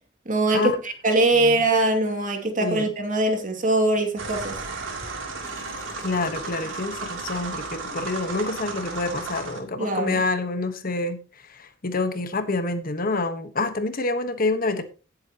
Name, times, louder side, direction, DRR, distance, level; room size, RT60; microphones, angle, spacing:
voice 1, 0.3-4.6 9.8-10.2, right 2 dB, 45° right, 2.4 m, -22 dB
voice 2, 2.6-2.9 6.0-14.8, left 3 dB, 45° left, 1.3 m, -27 dB
sound 1, 4.2-9.6, right 3 dB, 80° right, 3.1 m, -34 dB
sound 2, 5.4-8.8, left 3 dB, 15° left, 3.4 m, -47 dB
18.5 x 7.9 x 3.0 m
head